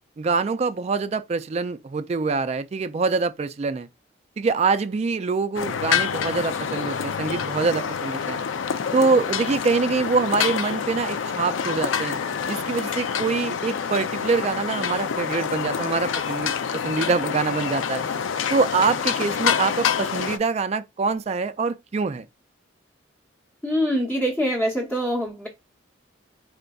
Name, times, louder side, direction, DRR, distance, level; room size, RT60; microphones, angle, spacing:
voice 1, 0.2-3.9 4.4-8.4 8.9-12.1 12.5-16.5 16.8-18.0 18.5-22.3, right 4 dB, 35° right, 0.3 m, -24 dB
sound 1, 5.5-20.4, left 7 dB, 85° left, 0.4 m, -27 dB
voice 2, 23.6-25.5, equal, 10° left, 0.8 m, -24 dB
4.3 x 3.8 x 2.3 m
head